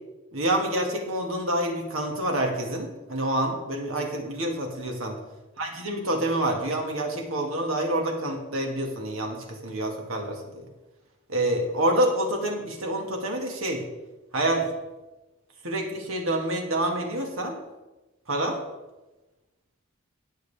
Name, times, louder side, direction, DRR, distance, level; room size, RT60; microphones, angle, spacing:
voice 1, 0.3-5.1 5.6-10.7 11.3-13.8 14.3-14.7 15.6-17.6 18.3-18.6, right 1 dB, 90° right, 2 dB, 2.2 m, -27 dB
19.0 x 6.6 x 3.6 m, 1.1 s
head